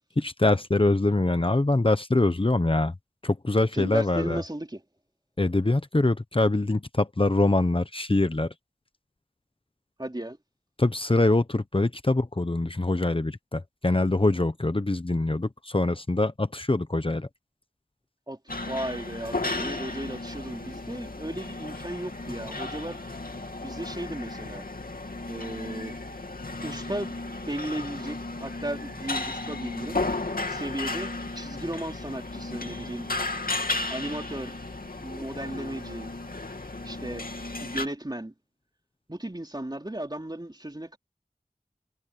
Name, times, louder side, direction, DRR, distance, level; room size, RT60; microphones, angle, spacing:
voice 1, 0.2-2.9 3.2-4.4 5.4-8.5 10.8-17.3, left 2 dB, 35° left, 1.0 m, -24 dB
voice 2, 3.7-4.8 10.0-10.4 18.3-23.0 23.6-24.7 25.3-25.9 26.6-27.1 27.5-30.0 30.5-33.1 33.9-34.5 35.0-36.1 36.8-37.3 37.6-38.3 39.1-41.0, right 1 dB, 30° right, 3.0 m, -35 dB
sound 1, 18.5-37.9, left 2 dB, 80° left, 2.7 m, -34 dB
wide cardioid pair, 40°, 15 cm